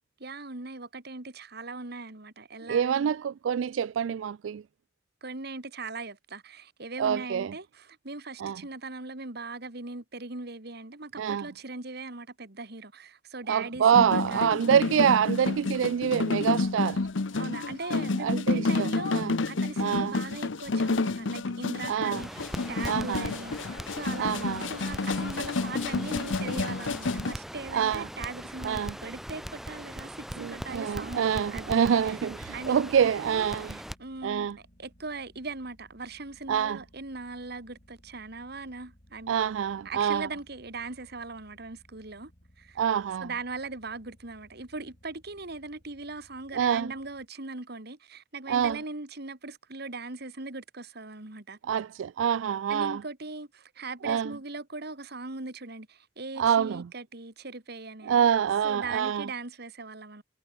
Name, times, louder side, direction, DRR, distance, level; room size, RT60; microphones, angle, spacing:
voice 1, 0.2-3.1 5.2-14.8 17.3-24.3 24.7-32.2 32.5-34.5 34.8-39.4 39.8-42.3 42.6-42.8 43.2-51.6 52.7-58.3 58.6-60.2, right 3 dB, 60° right, 2.4 m, -40 dB
voice 2, 2.7-4.6 7.0-7.5 8.4-8.6 11.2-11.5 13.5-17.1 18.2-19.4 19.8-20.2 21.9-22.2 22.9-23.3 24.2-24.7 27.7-28.1 28.6-28.9 30.4-33.8 34.2-34.6 36.5-36.8 39.3-40.3 42.8-43.3 46.5-46.9 48.5-48.8 51.7-53.0 54.0-54.3 56.4-56.9 58.0-59.3, right 8 dB, 90° right, 0.3 m, -26 dB
sound 1, 13.9-27.3, left 3 dB, 85° left, 0.9 m, -30 dB
Crackle, 22.1-33.9, equal, ahead, 0.5 m, -40 dB
sound 2, 27.7-47.3, equal, 45° left, 5.7 m, -60 dB
head